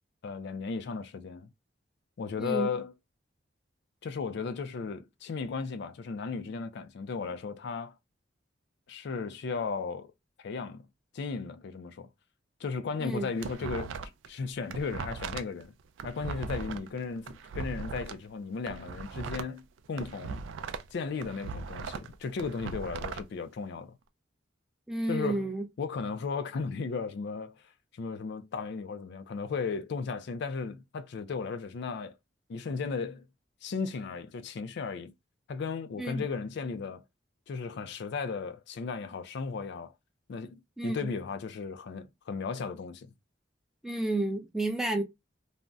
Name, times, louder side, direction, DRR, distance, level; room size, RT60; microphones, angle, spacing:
voice 1, 0.2-1.5 2.2-2.9 4.0-8.0 8.9-10.1 10.4-10.9 11.1-12.1 12.6-15.7 16.0-20.4 20.9-24.0 25.1-25.5 25.8-27.6 27.9-32.1 32.5-33.3 33.6-35.1 35.5-37.0 37.5-39.9 40.3-43.1, left 5 dB, 65° left, 0.4 m, -35 dB
voice 2, 2.4-2.7 13.0-13.3 24.9-25.6 36.0-36.2 40.8-41.1 43.8-45.0, right 2 dB, 5° right, 0.5 m, -31 dB
sound 1, 13.0-14.3 14.6-18.1 18.6-20.9 21.2-23.2, right 5 dB, 75° right, 0.3 m, -38 dB
2.6 x 2.0 x 3.4 m
head